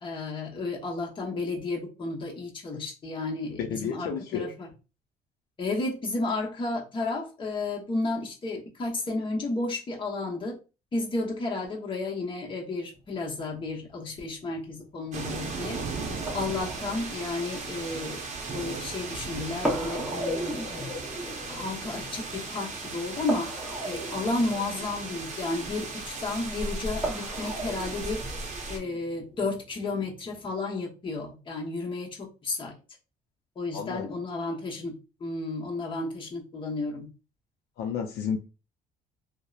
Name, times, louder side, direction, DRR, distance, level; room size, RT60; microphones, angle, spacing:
voice 1, 0.0-4.7 5.6-10.6 10.9-15.8 16.3-18.2 18.5-20.6 21.2-23.5 23.8-28.2 28.7-32.7 33.6-34.9 35.2-37.1, left 2 dB, 30° left, 0.8 m, -32 dB
voice 2, 3.6-4.5 33.7-34.0 37.8-38.4, left 7 dB, 70° left, 0.4 m, -31 dB
sound 1, 12.9-30.5, equal, ahead, 0.8 m, -38 dB
sound 2, 15.1-28.8, right 3 dB, 45° right, 0.7 m, -36 dB
2.8 x 2.0 x 2.3 m
cardioid pair, 110°, 17 cm